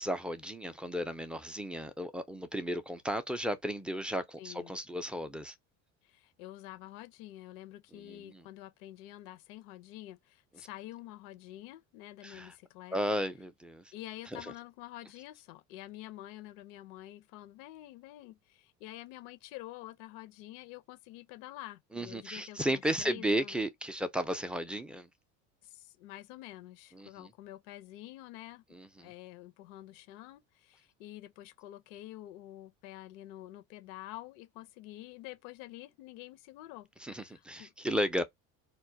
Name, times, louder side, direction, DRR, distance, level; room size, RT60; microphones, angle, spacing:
voice 1, 0.0-5.5 7.9-8.4 12.2-12.5 12.9-13.8 14.4-14.5 21.9-25.1 26.9-27.3 28.7-29.1 37.0-38.2, equal, 5° right, 0.3 m, -34 dB
voice 2, 4.4-4.8 6.0-13.2 13.9-23.6 25.6-28.6 29.0-37.7, left 15 dB, 75° left, 0.6 m, -48 dB
2.2 x 2.1 x 2.6 m
supercardioid pair, 90°, 37 cm